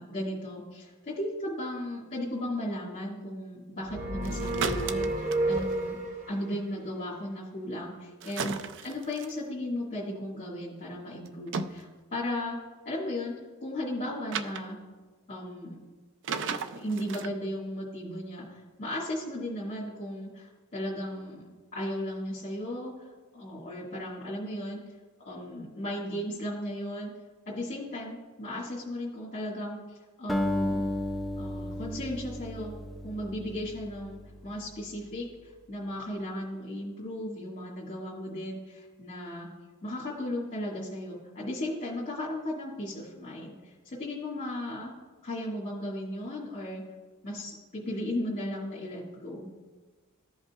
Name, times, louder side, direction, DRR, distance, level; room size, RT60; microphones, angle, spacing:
voice 1, 0.0-6.0 6.3-12.6 12.9-13.3 13.6-14.8 15.3-15.8 16.7-23.1 23.3-24.8 25.2-27.1 27.5-30.8 31.4-32.7 33.0-39.5 39.8-44.9 45.2-46.8 47.2-49.5, left 1 dB, 35° left, -6 dB, 1.8 m, -36 dB
sound 1, 3.9-6.3, right 2 dB, 40° right, 0.9 m, -30 dB
sound 2, 4.2-5.8 8.2-9.3 11.2-11.8 14.3-14.6 16.2-17.3, right 5 dB, 60° right, 0.4 m, -35 dB
Acoustic guitar, 30.3-34.7, left 1 dB, ahead, 0.5 m, -33 dB
14.5 x 5.4 x 2.4 m, 1.3 s
head